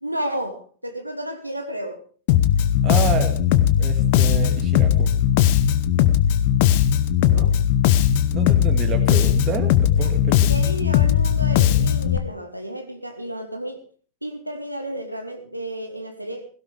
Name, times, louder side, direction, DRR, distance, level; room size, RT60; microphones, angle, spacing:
voice 1, 0.0-2.0 7.2-7.5 8.3-8.5 10.0-10.1 10.5-13.8 14.2-16.5, right 1 dB, 90° right, 6 dB, 1.3 m, -32 dB
Bass guitar, 2.3-12.2, left 10 dB, 50° left, 1.0 m, -18 dB
voice 2, 2.8-3.4 3.8-5.1 7.3-7.5 8.3-10.5, right 8 dB, 35° right, 7 dB, 1.9 m, -29 dB
17.5 x 16.5 x 3.4 m, 0.39 s
figure-of-eight pair, 90°, 0 cm